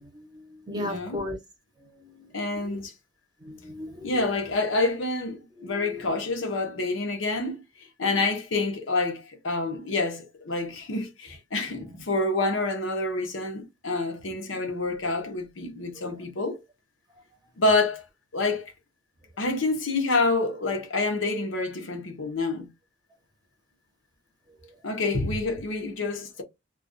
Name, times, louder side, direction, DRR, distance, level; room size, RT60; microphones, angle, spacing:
voice 1, 0.1-1.4 2.0-2.8 3.4-4.2 5.6-6.1, left 1 dB, 20° right, 0.8 m, -37 dB
voice 2, 0.7-1.2 2.3-2.9 4.0-7.6 8.0-16.6 17.6-18.0 18.3-18.7 19.4-22.7 24.8-26.4, left 2 dB, 85° left, 0.7 m, -27 dB
2.3 x 2.2 x 2.4 m
head